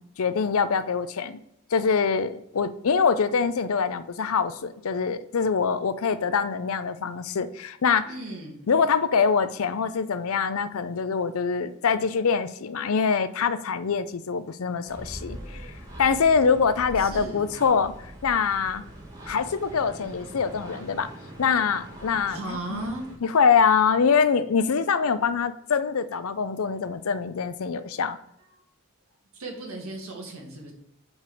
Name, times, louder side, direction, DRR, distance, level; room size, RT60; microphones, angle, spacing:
voice 1, 0.0-1.4 1.7-8.1 8.7-15.7 16.0-18.8 19.3-21.1 21.4-22.8 23.2-28.2, left 6 dB, 75° left, 13 dB, 0.5 m, -24 dB
voice 2, 8.0-8.7 17.0-17.7 22.3-23.1 28.5-28.6 29.3-30.7, right 2 dB, 75° right, -1 dB, 2.1 m, -36 dB
sound 1, 14.8-23.2, right 1 dB, 15° right, 1.7 m, -42 dB
5.3 x 5.0 x 6.2 m, 0.78 s
head